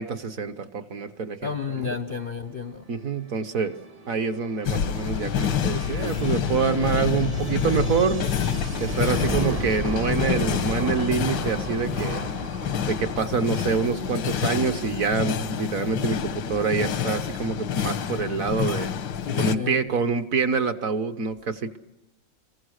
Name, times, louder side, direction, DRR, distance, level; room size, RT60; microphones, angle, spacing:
voice 1, 0.0-1.9 2.9-3.7 4.1-8.3 8.8-12.2 12.9-18.9 19.4-21.8, right 5 dB, 55° right, 1.2 m, -26 dB
voice 2, 1.4-2.8 19.2-19.8, left 6 dB, 45° left, 0.7 m, -31 dB
sound 1, 2.8-16.3, right 2 dB, 35° right, 0.6 m, -36 dB
sound 2, 4.6-19.5, left 8 dB, 85° left, 1.7 m, -28 dB
26.0 x 23.0 x 6.4 m
omnidirectional pair, 2.1 m